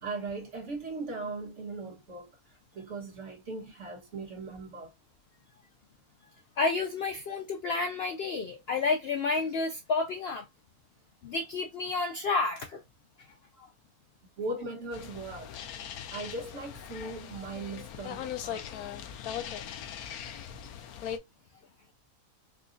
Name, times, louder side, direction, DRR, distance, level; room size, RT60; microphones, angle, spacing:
voice 1, 0.0-2.3 2.7-4.9 14.4-15.5 16.1-18.7, right 3 dB, 55° right, 1.5 m, -38 dB
voice 2, 6.6-10.4 11.2-12.8, left 3 dB, 70° left, 0.6 m, -30 dB
sound 1, 14.9-21.2, left 9 dB, 85° left, 1.1 m, -40 dB
4.7 x 2.3 x 2.6 m
omnidirectional pair, 1.5 m